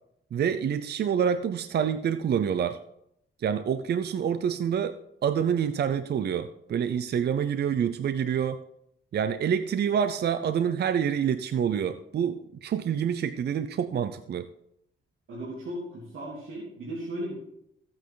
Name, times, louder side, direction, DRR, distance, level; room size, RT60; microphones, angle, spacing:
voice 1, 0.3-2.8 3.4-8.6 9.1-14.5, right 8 dB, 55° right, 11 dB, 0.5 m, -27 dB
voice 2, 15.3-17.3, right 1 dB, 85° right, -6 dB, 3.3 m, -36 dB
15.0 x 8.7 x 3.8 m, 0.77 s
cardioid pair, 120°, 21 cm